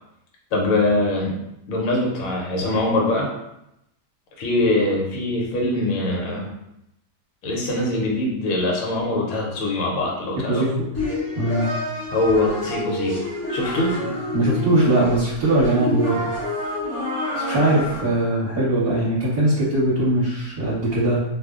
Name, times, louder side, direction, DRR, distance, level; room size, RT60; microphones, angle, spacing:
voice 1, 0.5-1.4 1.7-3.3 4.4-6.5 7.4-10.6 12.1-13.9, left 2 dB, 65° left, -2 dB, 1.1 m, -23 dB
voice 2, 10.5-10.9 11.4-11.7 14.0-16.3 17.3-21.2, right 2 dB, 40° right, -12 dB, 1.2 m, -21 dB
sound 1, 10.9-18.0, left 2 dB, 25° left, 0.3 m, -28 dB
2.6 x 2.1 x 3.6 m, 0.83 s
omnidirectional pair, 1.6 m